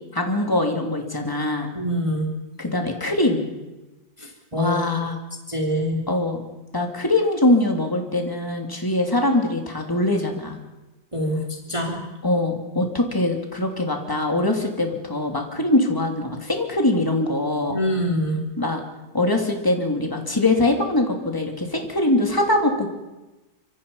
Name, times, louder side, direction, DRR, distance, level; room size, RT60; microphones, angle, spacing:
voice 1, 0.1-1.7 2.6-3.4 4.6-5.2 6.1-6.4 6.7-10.6 12.2-17.8 18.6-18.8 19.1-22.9, left 2 dB, 10° left, 2 dB, 2.8 m, -22 dB
voice 2, 1.7-2.3 4.2-5.1 5.5-6.0 11.1-12.0 17.7-18.4, equal, 15° right, 0 dB, 3.3 m, -25 dB
26.0 x 24.0 x 5.6 m, 1.0 s
omnidirectional pair, 2.1 m